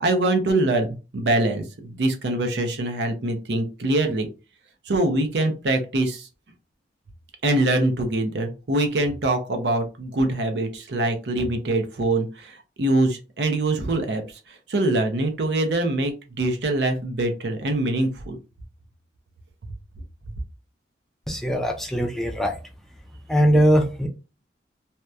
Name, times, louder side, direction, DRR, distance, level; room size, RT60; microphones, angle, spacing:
voice 1, 0.0-0.9 1.1-4.3 4.9-6.2 7.4-12.3 12.8-14.2 14.7-18.4, right 2 dB, 75° right, 5 dB, 0.6 m, -23 dB
voice 2, 21.3-22.5 23.3-24.1, equal, ahead, 2 dB, 0.3 m, -20 dB
2.8 x 2.1 x 2.3 m, 0.31 s
head